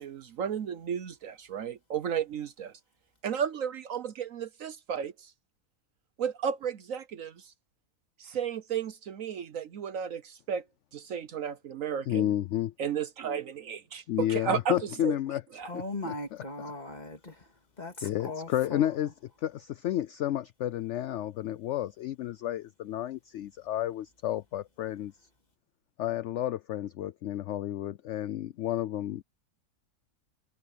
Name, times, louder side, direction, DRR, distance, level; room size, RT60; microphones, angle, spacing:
voice 1, 0.0-2.7 3.2-5.1 6.2-7.3 8.2-10.6 10.9-12.3 12.8-14.8 15.0-15.2 15.6-15.7, right 8 dB, 60° right, 1.1 m, -33 dB
voice 2, 12.1-12.7 14.1-15.4 15.7-16.1 18.0-19.1 19.4-25.1 26.0-29.2, left 12 dB, 70° left, 0.7 m, -31 dB
voice 3, 15.6-17.5 17.8-18.9, left 2 dB, 25° left, 2.4 m, -39 dB
omnidirectional pair, 1.7 m